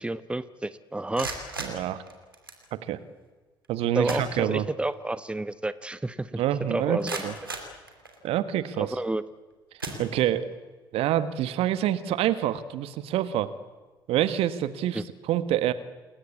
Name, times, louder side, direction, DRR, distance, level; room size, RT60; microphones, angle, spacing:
voice 1, 0.0-1.3 3.9-6.4 6.7-7.2 8.8-9.2 14.9-15.0, right 2 dB, 10° right, 15 dB, 1.1 m, -30 dB
sound 1, 1.0-2.7 3.6-3.7 4.0-4.9 5.3-5.4 6.0-6.1 6.6-8.5 9.1-9.3 9.8-10.6, right 2 dB, 90° right, 2.7 m, -38 dB
voice 2, 1.6-2.0 2.9-3.0 3.7-4.7 6.4-7.3 8.2-8.9 10.0-10.5 10.9-13.5 14.1-15.7, right 11 dB, 60° right, 14 dB, 1.6 m, -26 dB
28.5 x 21.5 x 8.3 m, 1.3 s
figure-of-eight pair, 50°, 11 cm